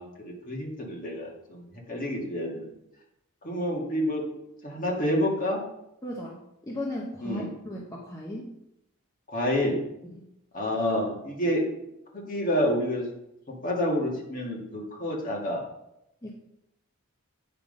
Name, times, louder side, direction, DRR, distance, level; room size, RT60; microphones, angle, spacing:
voice 1, 0.0-2.7 3.4-4.2 4.6-5.6 7.2-7.5 9.3-9.8 10.5-11.6 12.1-13.1 13.5-15.6, equal, 35° left, -2 dB, 2.0 m, -28 dB
voice 2, 6.0-8.5 10.0-10.2 16.2-16.3, left 1 dB, 15° left, -4 dB, 0.9 m, -36 dB
8.9 x 5.6 x 5.4 m, 0.85 s
head